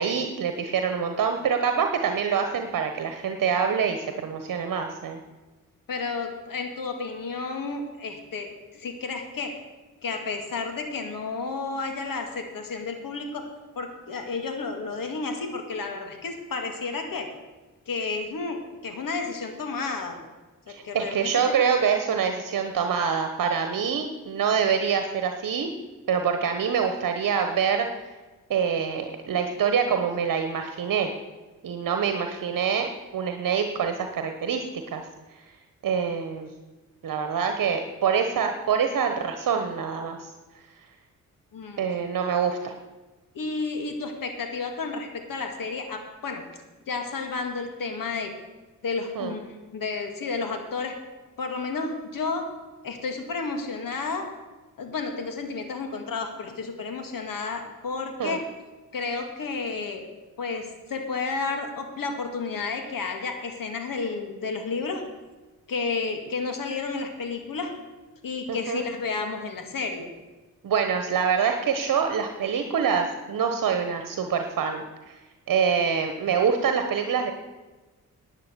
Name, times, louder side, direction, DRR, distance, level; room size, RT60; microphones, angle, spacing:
voice 1, 0.0-5.2 20.7-25.7 26.1-27.9 28.5-31.1 31.6-34.6 34.9-35.0 35.8-36.5 37.0-40.2 41.8-42.7 49.1-49.3 58.2-58.4 68.5-68.8 70.6-75.1 75.5-77.3, right 6 dB, 65° right, 6 dB, 1.1 m, -25 dB
voice 2, 5.9-9.6 10.0-13.5 13.8-17.3 17.9-20.2 20.7-21.6 41.5-41.8 43.3-46.4 46.9-48.3 48.8-51.0 51.4-52.5 52.8-54.3 54.8-58.4 58.9-60.0 60.4-65.0 65.7-67.7 68.2-70.1, left 4 dB, 65° left, 5 dB, 2.2 m, -31 dB
11.0 x 9.0 x 6.9 m, 1.2 s
supercardioid pair, 50°, 35 cm